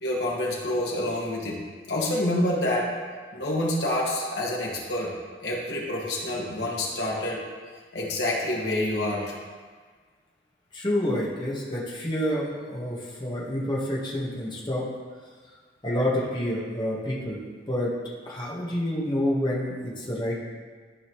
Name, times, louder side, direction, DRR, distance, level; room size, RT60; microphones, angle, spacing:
voice 1, 0.0-1.6 1.9-2.9 3.3-5.1 5.4-7.4 7.9-9.4, left 1 dB, 75° left, -4 dB, 1.8 m, -27 dB
voice 2, 10.7-14.9 15.8-17.4 17.7-17.9 18.3-20.4, left 1 dB, 25° left, -5 dB, 1.5 m, -28 dB
13.0 x 5.4 x 3.1 m, 1.5 s
head